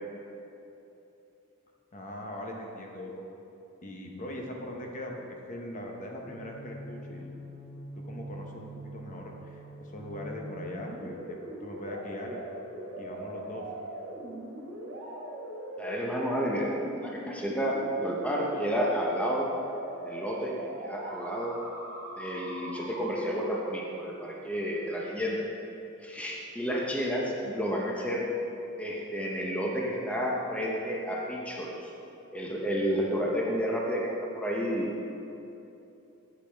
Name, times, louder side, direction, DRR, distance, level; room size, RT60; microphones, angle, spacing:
voice 1, 1.9-3.2 3.8-7.3 8.0-12.4 13.0-13.7, left 1 dB, 40° left, 0 dB, 0.8 m, -40 dB
sound 1, 6.2-23.2, right 1 dB, 70° right, 1.7 m, -41 dB
voice 2, 15.8-16.7 17.0-19.5 20.0-20.5 20.8-21.6 22.2-25.4 26.0-28.2 28.8-31.9 32.3-34.9, equal, 5° left, -3 dB, 0.7 m, -31 dB
8.4 x 8.2 x 3.4 m, 2.9 s
head